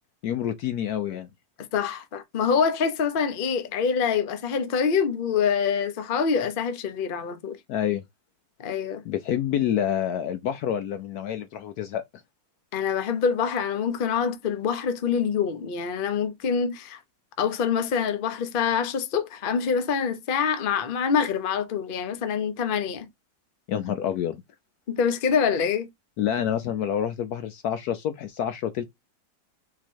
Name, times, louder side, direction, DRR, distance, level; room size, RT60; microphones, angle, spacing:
voice 1, 0.2-1.3 7.7-8.0 9.1-12.0 23.7-24.4 26.2-28.8, left 10 dB, 70° left, 1.0 m, -27 dB
voice 2, 1.7-7.6 8.6-9.0 12.7-17.0 17.4-23.1 24.9-25.9, left 6 dB, 45° left, 0.7 m, -25 dB
4.1 x 2.9 x 4.5 m
omnidirectional pair, 2.0 m